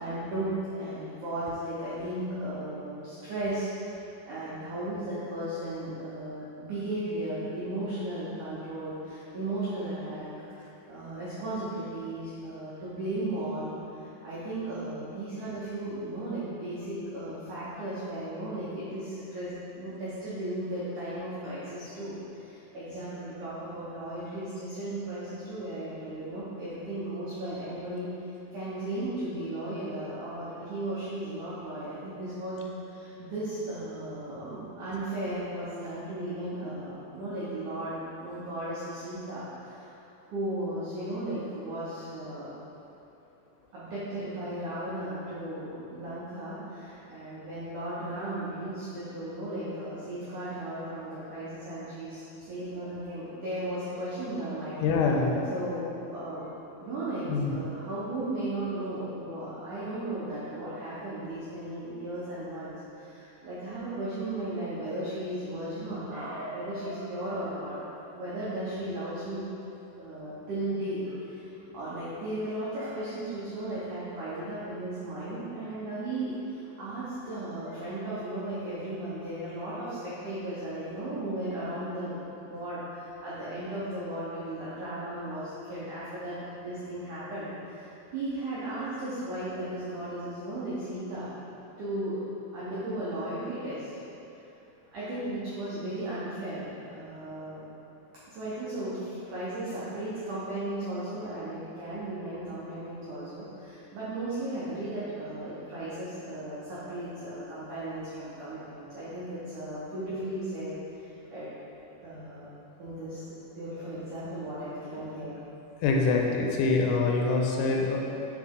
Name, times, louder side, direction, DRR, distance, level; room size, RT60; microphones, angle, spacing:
voice 1, 0.0-4.0 4.3-28.1 28.5-39.9 40.3-42.5 43.7-54.8 55.5-56.5 56.8-69.5 70.0-71.4 71.7-91.3 91.8-92.2 92.5-93.9 94.9-97.6 98.3-111.5 112.0-112.5 112.8-113.2 113.5-115.3, right 1 dB, 85° right, -11 dB, 1.7 m, -35 dB
voice 2, 54.8-55.4 57.3-57.5 115.8-118.0, left 4 dB, 85° left, 0 dB, 2.8 m, -25 dB
7.3 x 4.2 x 3.7 m, 3.0 s
omnidirectional pair, 5.1 m